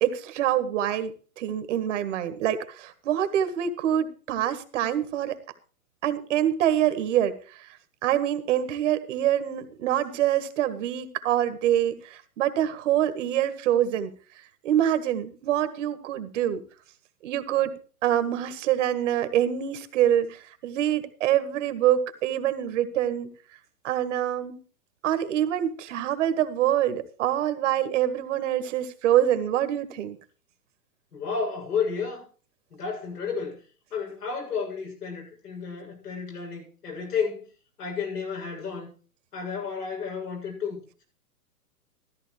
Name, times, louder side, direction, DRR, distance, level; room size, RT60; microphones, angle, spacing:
voice 1, 0.0-5.4 6.0-7.7 8.0-14.1 14.6-16.6 17.2-17.7 18.0-23.3 23.8-24.6 25.0-30.2, right 11 dB, 50° right, 1.7 m, -25 dB
voice 2, 31.1-32.3 32.7-33.6 33.9-37.5 37.8-38.9 39.3-41.0, left 5 dB, 80° left, 7.7 m, -32 dB
14.0 x 12.5 x 3.2 m
hypercardioid pair, 130°, 46 cm